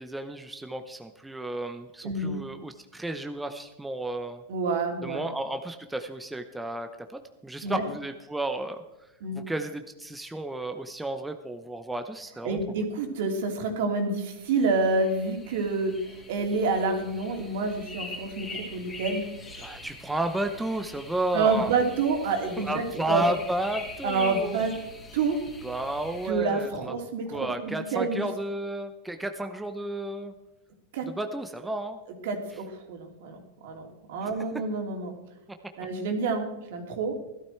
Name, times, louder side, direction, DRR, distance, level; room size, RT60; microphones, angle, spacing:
voice 1, 0.0-4.4 5.0-8.8 9.3-12.6 19.6-21.7 22.6-24.6 25.6-26.9 27.3-30.3 31.1-32.0 34.2-34.3, right 1 dB, 5° right, 7 dB, 0.7 m, -32 dB
voice 2, 2.0-2.4 4.5-5.2 7.6-7.8 9.2-9.4 12.4-19.2 19.6-19.7 21.3-23.2 24.0-24.7 25.1-25.4 26.2-28.2 30.9-31.1 32.2-35.1 35.8-37.1, right 3 dB, 65° right, 4 dB, 3.0 m, -28 dB
sound 1, 14.3-26.3, left 2 dB, 15° left, 3.1 m, -43 dB
17.0 x 12.5 x 4.5 m, 0.98 s
supercardioid pair, 145°, 0 cm